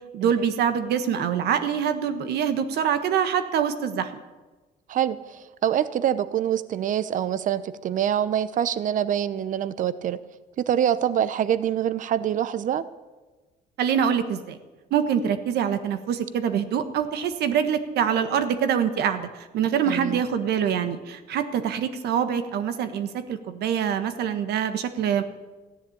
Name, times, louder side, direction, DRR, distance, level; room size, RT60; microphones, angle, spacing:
voice 1, 0.1-4.1 13.8-14.6 14.9-25.2, right 8 dB, 75° right, 10 dB, 1.5 m, -25 dB
voice 2, 4.9-10.2 10.6-12.8 19.9-20.2, right 10 dB, 50° right, 16 dB, 0.8 m, -25 dB
14.5 x 10.5 x 8.6 m, 1.2 s
cardioid pair, 110°, 17 cm